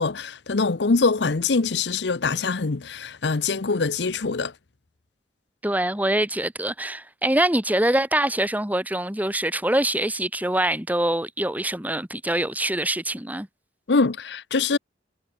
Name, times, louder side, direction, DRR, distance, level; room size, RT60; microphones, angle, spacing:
voice 1, 0.0-4.5 13.9-14.8, left 4 dB, 75° left, 0.8 m, -23 dB
voice 2, 5.6-13.5, right 1 dB, 10° right, 2.4 m, -24 dB
head